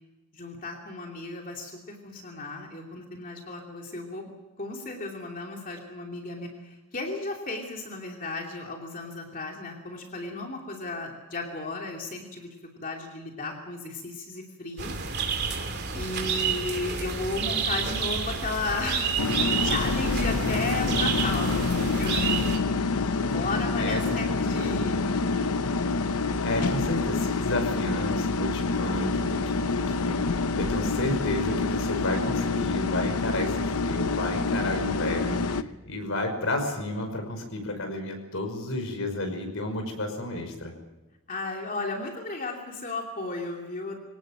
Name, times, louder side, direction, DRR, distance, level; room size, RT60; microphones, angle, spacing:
voice 1, 0.3-15.0 15.9-22.3 23.2-25.2 41.3-44.0, left 2 dB, 40° left, 1 dB, 2.9 m, -35 dB
sound 1, 14.8-22.6, right 5 dB, 50° right, 2.8 m, -30 dB
sound 2, 19.2-35.6, left 3 dB, 80° left, 0.8 m, -27 dB
voice 2, 23.8-24.9 26.4-40.7, left 1 dB, 65° left, 4 dB, 5.5 m, -31 dB
24.5 x 18.5 x 7.7 m, 1.1 s
head